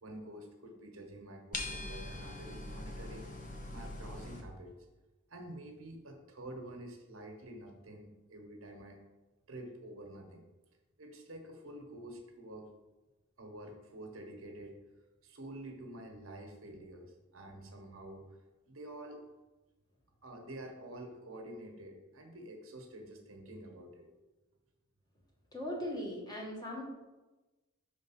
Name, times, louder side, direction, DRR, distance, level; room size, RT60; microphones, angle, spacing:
voice 1, 0.0-3.3 3.7-4.8 5.3-9.0 9.5-10.4 11.0-12.7 13.4-14.8 15.2-18.4 18.7-19.2 20.2-24.2, right 1 dB, 80° right, 3 dB, 1.1 m, -48 dB
sound 1, 1.5-4.4, left 2 dB, 40° left, 0.8 m, -42 dB
voice 2, 25.5-26.8, left 1 dB, 20° left, -3 dB, 1.5 m, -39 dB
5.1 x 3.8 x 5.6 m, 1.1 s
head